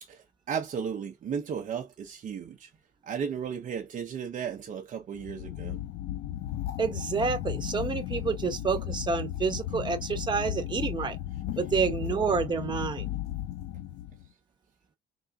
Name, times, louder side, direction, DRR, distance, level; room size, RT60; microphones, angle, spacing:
voice 1, 0.0-2.7 3.0-5.8, right 7 dB, 50° right, 0.8 m, -35 dB
sound 1, 5.1-14.3, left 13 dB, 80° left, 0.6 m, -35 dB
voice 2, 6.8-11.2 11.6-13.1, right 5 dB, 25° right, 1.1 m, -29 dB
3.9 x 3.4 x 2.3 m
cardioid pair, 110°, 17 cm